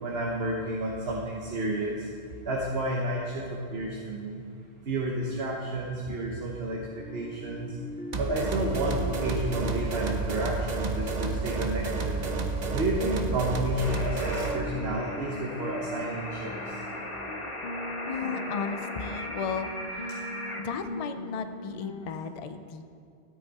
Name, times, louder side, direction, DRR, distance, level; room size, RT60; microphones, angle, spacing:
voice 1, 0.0-2.0 2.4-4.3 4.9-7.7 8.1-12.1 12.7-16.5, right 1 dB, 75° right, -2 dB, 1.3 m, -31 dB
sound 1, 6.9-22.1, left 2 dB, 65° left, 1.0 m, -41 dB
sound 2, 8.1-14.6, right 3 dB, 45° right, 0.9 m, -30 dB
sound 3, 13.8-20.6, left 1 dB, 30° left, 1.2 m, -38 dB
voice 2, 18.1-19.7 20.0-20.3 20.5-22.8, left 6 dB, 45° left, 9 dB, 0.5 m, -35 dB
14.0 x 8.7 x 4.1 m, 2.3 s
omnidirectional pair, 1.0 m